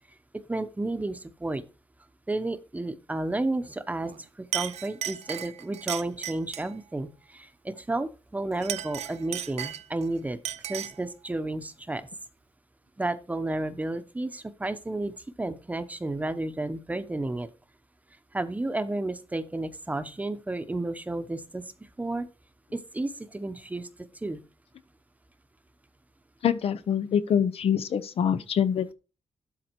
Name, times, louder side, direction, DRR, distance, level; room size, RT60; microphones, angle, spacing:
voice 1, 0.5-1.6 2.3-4.1 4.4-10.4 10.7-12.0 13.0-17.5 18.3-21.6 22.0-22.3 22.7-23.9 24.2-24.4, right 2 dB, 15° right, 0.9 m, -32 dB
Chink clink, 4.0-4.2 4.5-6.7 8.5-10.1 10.4-11.0, right 11 dB, 90° right, 0.6 m, -35 dB
voice 2, 26.4-28.9, left 8 dB, 65° left, 0.8 m, -25 dB
12.0 x 4.2 x 4.5 m
wide cardioid pair, 135°, 11 cm